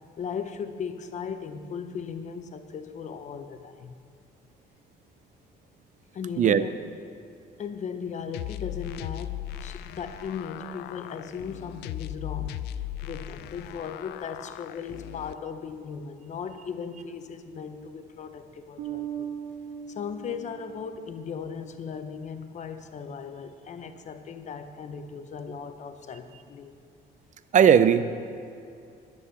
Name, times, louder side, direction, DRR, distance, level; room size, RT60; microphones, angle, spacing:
voice 1, 0.2-3.9 6.1-6.9 7.6-12.6 13.0-19.3 19.9-26.7, left 6 dB, 45° left, 8 dB, 1.0 m, -37 dB
sound 1, 8.3-15.3, left 12 dB, 80° left, 0.4 m, -38 dB
Bass guitar, 18.8-21.4, right 9 dB, 80° right, 1.9 m, -38 dB
voice 2, 27.5-28.0, right 8 dB, 45° right, 13 dB, 0.6 m, -17 dB
11.0 x 9.8 x 6.9 m, 2.5 s
cardioid pair, 110°, 17 cm